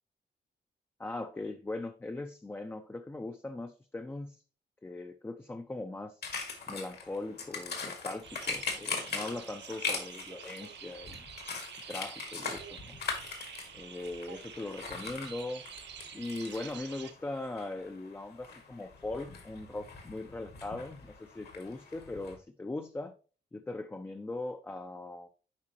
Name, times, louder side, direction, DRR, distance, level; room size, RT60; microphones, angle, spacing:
voice 1, 1.0-4.4 4.8-6.2 6.7-11.3 11.9-13.0 13.7-15.6 16.1-23.1 23.5-25.3, left 2 dB, 10° left, 0.4 m, -40 dB
sound 1, 6.2-22.4, left 4 dB, 70° left, 1.7 m, -41 dB
sound 2, 8.2-17.1, right 8 dB, 90° right, 0.8 m, -48 dB
8.3 x 5.2 x 2.9 m
wide cardioid pair, 135°, 18 cm